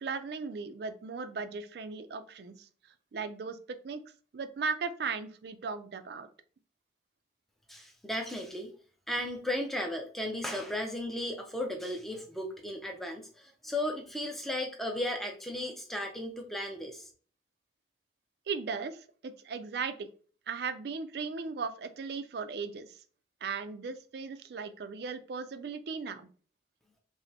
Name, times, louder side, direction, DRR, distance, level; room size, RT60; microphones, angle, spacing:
voice 1, 0.0-2.6 3.1-4.0 4.3-6.3 18.5-20.1 20.5-23.0 23.4-26.3, right 5 dB, 60° right, 10 dB, 0.4 m, -37 dB
voice 2, 7.7-8.7 9.1-17.1, left 1 dB, ahead, 2 dB, 0.5 m, -35 dB
5.0 x 2.1 x 2.8 m, 0.43 s
head